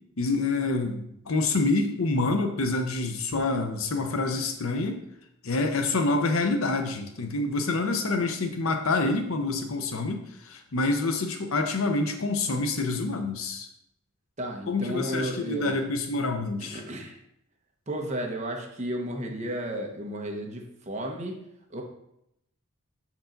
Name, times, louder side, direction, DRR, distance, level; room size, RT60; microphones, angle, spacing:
voice 1, 0.2-5.0 5.4-13.7 14.7-16.8, left 3 dB, 75° left, 5 dB, 0.7 m, -27 dB
voice 2, 14.4-15.9 16.6-17.2 17.9-21.4 21.7-21.8, right 1 dB, 30° right, 1 dB, 0.9 m, -33 dB
7.0 x 4.6 x 3.9 m, 0.80 s
head